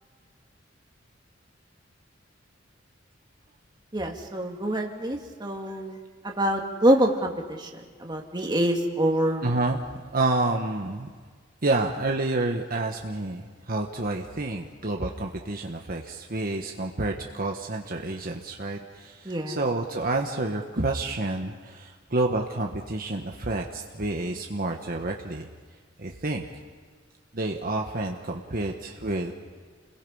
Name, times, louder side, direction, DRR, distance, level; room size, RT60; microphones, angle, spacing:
voice 1, 3.9-6.0 6.2-7.7 8.0-9.4 19.3-19.6, right 1 dB, 20° right, 1 dB, 2.2 m, -25 dB
voice 2, 9.4-11.1 11.6-25.5 26.0-26.5 27.3-29.3, right 2 dB, 50° right, 2 dB, 1.4 m, -29 dB
30.0 x 21.5 x 5.6 m, 1.5 s
head